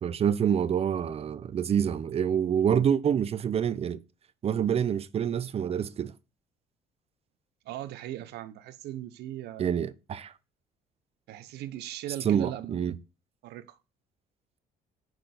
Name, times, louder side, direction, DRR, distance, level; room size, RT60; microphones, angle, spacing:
voice 1, 0.0-4.0 4.4-6.1 9.6-10.3 12.2-12.9, right 8 dB, 35° right, 0.6 m, -27 dB
voice 2, 7.6-9.7 11.3-13.0 13.4-13.8, right 13 dB, 75° right, 0.7 m, -39 dB
6.0 x 4.6 x 5.1 m
cardioid pair, 110°, 17 cm